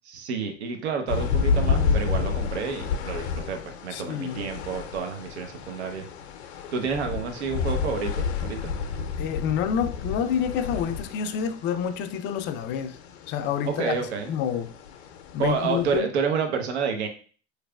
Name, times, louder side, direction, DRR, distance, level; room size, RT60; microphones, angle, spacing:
voice 1, 0.1-6.0 6.7-8.7 13.7-14.3 15.4-17.1, right 6 dB, 80° right, 0.8 m, -29 dB
sound 1, 1.1-16.0, left 5 dB, 75° left, 0.6 m, -30 dB
voice 2, 3.9-4.4 9.2-13.0 13.3-14.0 14.3-14.7 15.3-16.1, left 8 dB, 35° left, 0.4 m, -28 dB
3.9 x 3.1 x 2.2 m
hypercardioid pair, 100°, 33 cm